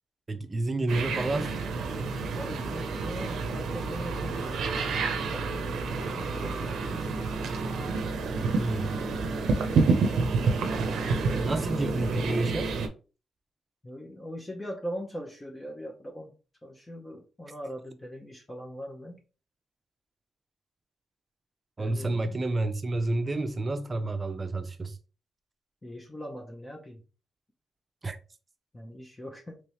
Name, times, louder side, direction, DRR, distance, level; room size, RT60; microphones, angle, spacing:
voice 1, 0.3-1.6 8.6-8.9 11.4-12.7 21.8-25.0 28.0-28.2, right 2 dB, 30° right, 0.5 m, -29 dB
sound 1, 0.9-12.9, right 4 dB, 85° right, 0.6 m, -29 dB
voice 2, 2.3-4.6 5.0-7.2 10.0-11.6 13.8-16.3 16.6-19.2 21.8-22.4 25.8-27.0 28.7-29.6, equal, 15° left, 0.6 m, -41 dB
3.4 x 3.1 x 2.9 m
cardioid pair, 100°, 0 cm